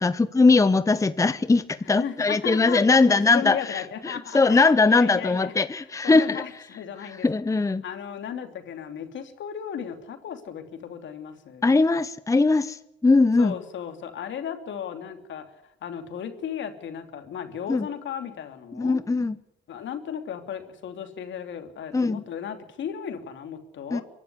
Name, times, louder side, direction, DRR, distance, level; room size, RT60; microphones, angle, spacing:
voice 1, 0.0-6.6 7.1-7.8 11.6-13.5 17.7-17.9 18.7-19.4 21.9-22.2 23.9-24.0, left 3 dB, 15° left, 14 dB, 0.7 m, -21 dB
voice 2, 1.9-5.5 6.0-7.3 7.8-11.6 13.4-19.0 19.7-24.0, left 8 dB, 70° left, 6 dB, 3.0 m, -35 dB
24.5 x 12.0 x 9.9 m, 0.84 s
cardioid pair, 90°, 20 cm